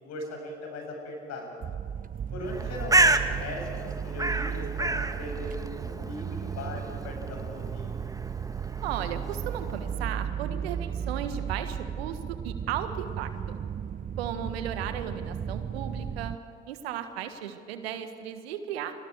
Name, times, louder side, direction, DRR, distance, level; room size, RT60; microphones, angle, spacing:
voice 1, 0.0-1.5 2.3-8.0, left 2 dB, 55° left, 1 dB, 6.9 m, -39 dB
sound 1, 1.6-16.4, right 8 dB, 25° right, 0.6 m, -35 dB
Bird, 2.4-10.0, right 2 dB, 10° right, 1.4 m, -30 dB
voice 2, 8.8-13.6 14.2-16.3 16.7-18.9, right 9 dB, 75° right, 9 dB, 1.6 m, -35 dB
30.0 x 24.5 x 4.8 m, 2.5 s
figure-of-eight pair, 55°, 31 cm